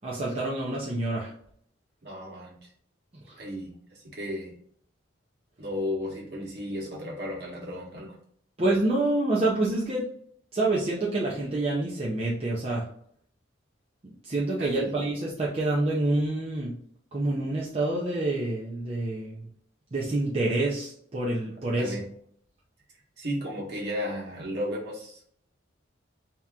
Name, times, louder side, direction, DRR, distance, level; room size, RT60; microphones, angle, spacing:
voice 1, 0.0-1.3 8.6-10.0 10.5-12.8 14.2-16.7 17.1-19.4 19.9-21.9, right 2 dB, 30° right, -5 dB, 0.7 m, -27 dB
voice 2, 2.0-2.5 3.4-4.5 5.6-8.2 14.6-14.9 21.8-22.1 23.2-25.2, left 1 dB, 55° right, -2 dB, 1.4 m, -34 dB
3.5 x 2.9 x 3.6 m, 0.63 s
head